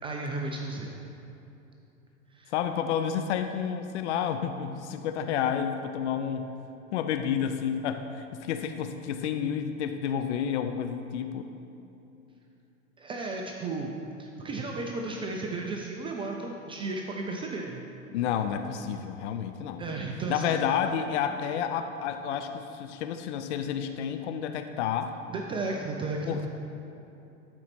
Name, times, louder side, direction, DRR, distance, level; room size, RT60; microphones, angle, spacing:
voice 1, 0.0-0.9 2.3-2.5 13.0-13.9 14.2-17.8 19.8-20.6 25.3-26.4, right 3 dB, 15° right, 0 dB, 0.3 m, -34 dB
voice 2, 2.5-6.5 6.9-11.5 18.1-19.9 20.3-25.1 26.3-26.5, left 8 dB, 60° left, 8 dB, 0.5 m, -30 dB
12.5 x 4.4 x 4.3 m, 2.9 s
figure-of-eight pair, 90°, 40 cm